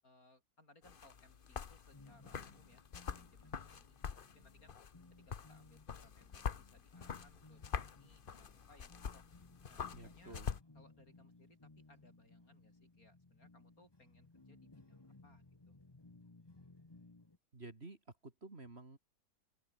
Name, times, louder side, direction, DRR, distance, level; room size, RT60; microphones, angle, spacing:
voice 1, 0.0-2.8 3.1-4.8 5.2-9.3 9.7-10.4 10.7-15.8, left 2 dB, 60° left, 7.7 m, -67 dB
sound 1, 0.8-10.6, left 6 dB, 40° left, 1.0 m, -45 dB
sound 2, 1.9-17.4, left 2 dB, 15° left, 1.3 m, -62 dB
voice 2, 9.9-10.5 17.5-19.0, right 3 dB, 40° right, 3.1 m, -52 dB
open air
omnidirectional pair, 1.7 m